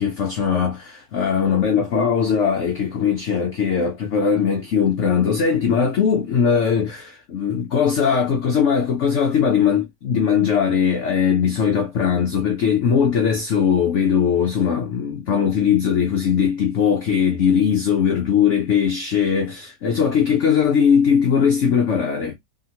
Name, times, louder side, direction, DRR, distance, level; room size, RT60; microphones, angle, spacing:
voice 1, 0.0-22.3, left 7 dB, 75° left, 0.6 m, -20 dB
2.8 x 2.8 x 2.8 m
omnidirectional pair, 1.9 m